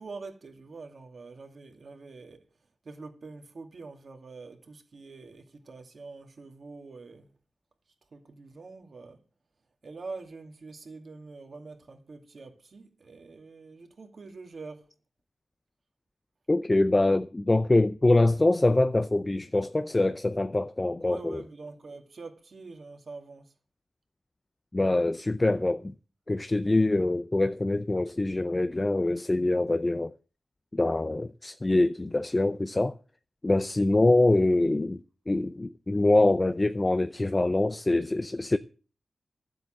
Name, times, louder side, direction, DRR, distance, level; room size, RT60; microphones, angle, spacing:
voice 1, 0.0-2.4 2.8-7.3 8.1-9.2 9.8-14.9 21.0-23.5, right 3 dB, 55° right, 2.4 m, -45 dB
voice 2, 16.5-21.4 24.7-25.9 26.3-30.1 30.7-33.0 33.4-38.6, left 2 dB, 25° left, 0.5 m, -24 dB
12.5 x 7.8 x 7.5 m
wide cardioid pair, 100°, 0 cm